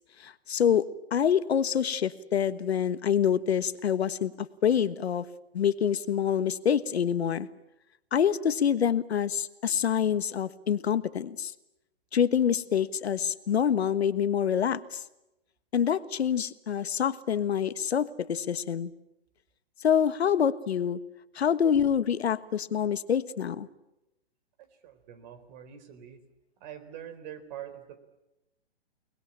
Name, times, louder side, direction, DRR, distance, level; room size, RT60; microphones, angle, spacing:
voice 1, 0.2-0.8 1.1-5.3 5.5-7.5 8.1-11.5 12.1-15.0 15.7-18.9 19.8-21.0 21.3-23.7, left 8 dB, 80° left, 13 dB, 1.4 m, -26 dB
voice 2, 24.6-26.3 26.6-28.0, right 10 dB, 45° right, 11 dB, 4.0 m, -44 dB
29.5 x 20.5 x 8.8 m, 0.93 s
hypercardioid pair, 140°, 32 cm